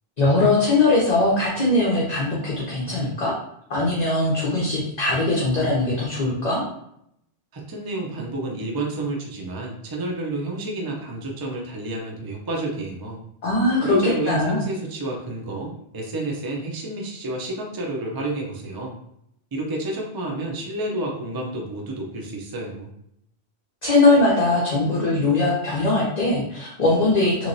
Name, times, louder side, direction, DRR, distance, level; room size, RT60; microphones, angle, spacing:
voice 1, 0.2-3.3 3.7-6.6 13.4-14.6 23.8-27.5, left 2 dB, 45° left, -5 dB, 0.7 m, -20 dB
voice 2, 7.5-13.2 13.8-19.0 19.5-22.9, right 1 dB, 30° right, -1 dB, 0.5 m, -29 dB
3.1 x 3.0 x 2.6 m, 0.75 s
omnidirectional pair, 1.1 m